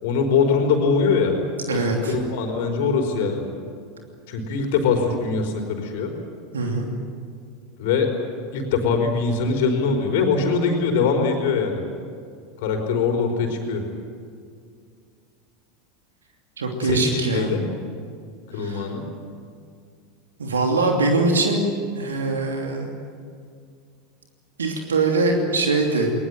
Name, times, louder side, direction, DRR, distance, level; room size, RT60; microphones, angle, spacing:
voice 1, 0.0-1.3 1.7-1.8 2.1-3.4 4.3-6.1 7.8-8.1 8.5-11.8 12.6-13.8 16.8-17.6 18.5-19.0, left 5 dB, 60° left, 4 dB, 4.7 m, -22 dB
voice 2, 1.7-2.2 6.5-6.9 16.6-17.5 18.5-18.9 20.4-21.6 22.0-22.9 24.6-26.1, right 3 dB, 80° right, 2 dB, 2.8 m, -22 dB
20.5 x 20.5 x 9.3 m, 2.2 s
figure-of-eight pair, 85°, 0 cm